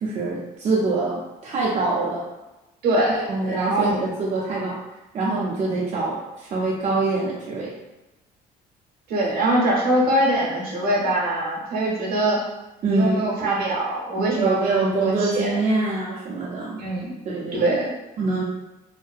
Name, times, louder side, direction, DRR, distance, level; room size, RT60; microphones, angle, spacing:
voice 1, 0.0-2.2 3.1-4.7 5.1-7.7 12.8-13.6 14.2-16.8 17.3-17.7 18.2-18.4, right 3 dB, 45° right, -6 dB, 0.5 m, -25 dB
voice 2, 2.8-4.0 9.1-12.4 12.9-15.6 16.8-17.1 17.5-17.9, right 1 dB, 65° right, -3 dB, 0.8 m, -23 dB
2.6 x 2.1 x 2.3 m, 1.0 s
cardioid pair, 110°, 17 cm